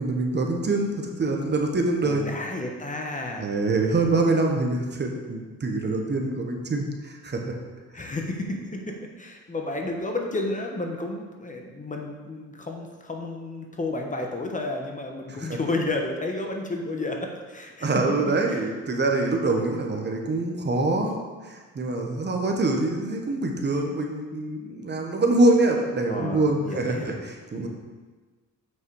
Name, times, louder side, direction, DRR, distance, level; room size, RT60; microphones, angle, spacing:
voice 1, 0.0-2.2 3.4-7.5 15.3-15.6 17.8-27.7, right 2 dB, 35° right, 2 dB, 1.3 m, -25 dB
voice 2, 2.0-3.5 7.9-18.0 18.5-18.6 26.1-27.2 27.5-27.7, left 2 dB, 25° left, 2 dB, 1.2 m, -32 dB
7.7 x 6.1 x 4.8 m, 1.4 s
cardioid pair, 90°, 30 cm